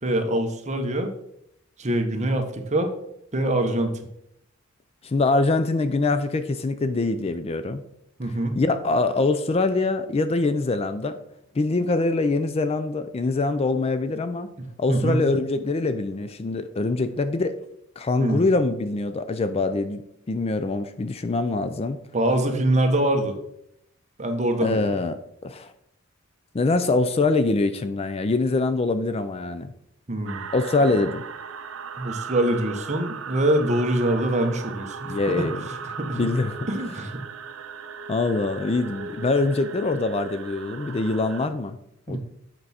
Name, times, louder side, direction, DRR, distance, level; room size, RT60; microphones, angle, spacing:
voice 1, 0.0-1.1 1.8-2.9 3.3-3.9 8.2-8.6 14.9-15.2 18.2-18.4 22.1-23.3 24.2-24.9 30.1-30.4 32.0-35.5 35.8-36.3 36.7-37.2 42.1-42.2, right 1 dB, 35° right, 5 dB, 1.0 m, -24 dB
voice 2, 5.0-7.8 8.6-11.2 11.6-14.5 14.8-17.6 18.0-20.0 20.3-22.0 24.6-25.7 26.5-29.7 30.5-31.2 35.0-35.6 36.1-36.6 38.1-41.8 42.1-42.2, left 3 dB, 30° left, 11 dB, 0.4 m, -24 dB
sound 1, 30.3-41.5, right 6 dB, 75° right, 0.6 m, -37 dB
7.7 x 4.6 x 4.1 m, 0.77 s
head